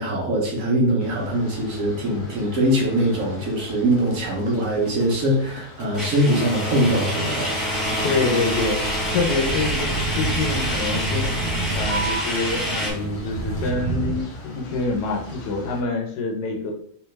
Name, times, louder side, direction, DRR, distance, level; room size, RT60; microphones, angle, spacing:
voice 1, 0.0-7.5, right 1 dB, 60° right, -2 dB, 1.2 m, -22 dB
sound 1, 1.0-15.8, equal, 50° left, 0.9 m, -33 dB
sound 2, 6.0-12.9, equal, ahead, 1.3 m, -28 dB
sound 3, 7.5-14.2, right 3 dB, 85° right, 1.3 m, -30 dB
voice 2, 7.8-8.8 9.1-11.4 11.7-16.7, left 3 dB, 75° left, 1 dB, 1.3 m, -26 dB
3.3 x 3.1 x 3.2 m, 0.65 s
omnidirectional pair, 1.8 m